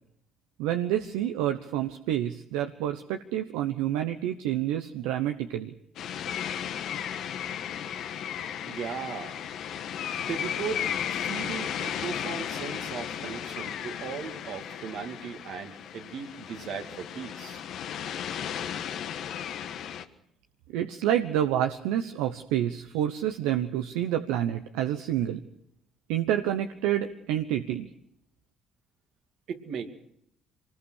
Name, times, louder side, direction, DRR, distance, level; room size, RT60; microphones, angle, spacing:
voice 1, 0.6-5.7 20.7-25.4 26.1-27.9, right 11 dB, 85° right, 7 dB, 0.9 m, -28 dB
sound 1, 6.0-20.0, left 9 dB, 70° left, 1.4 m, -35 dB
voice 2, 8.7-9.4 10.3-17.6 29.5-29.9, right 6 dB, 70° right, 5 dB, 2.5 m, -37 dB
24.5 x 20.0 x 6.5 m, 0.73 s
supercardioid pair, 70°, 0 cm